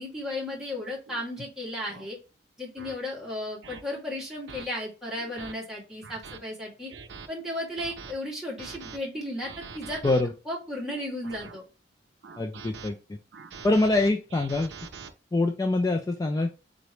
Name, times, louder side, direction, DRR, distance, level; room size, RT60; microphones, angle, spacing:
voice 1, 0.0-2.2 2.6-6.9 7.3-10.0 10.4-11.6, left 1 dB, 5° right, -5 dB, 1.6 m, -34 dB
sound 1, 1.1-1.2 1.9-2.1 2.8-2.9 3.6-3.8 4.5-4.6 5.2-5.5 6.0-6.4 6.9-7.3 7.8-8.1 8.6-9.0 9.4-10.2 10.9-11.6 12.2-12.9 13.3-15.1, right 5 dB, 65° right, 0.6 m, -43 dB
voice 2, 12.4-13.0 13.6-14.7 15.3-16.6, left 2 dB, 20° left, 3 dB, 0.3 m, -24 dB
3.9 x 3.0 x 3.2 m, 0.31 s
head